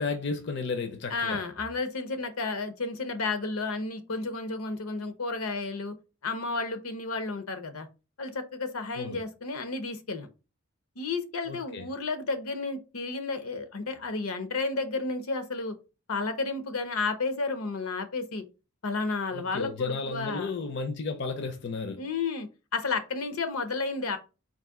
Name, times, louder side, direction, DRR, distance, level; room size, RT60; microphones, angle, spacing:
voice 1, 0.0-1.5 8.9-9.2 11.5-11.9 19.3-22.1, left 4 dB, 55° left, 0.5 m, -33 dB
voice 2, 1.1-5.9 6.2-7.9 8.2-10.3 11.0-15.7 16.1-18.4 18.8-20.5 22.0-24.2, left 3 dB, 85° left, 0.8 m, -32 dB
4.0 x 2.6 x 3.6 m
head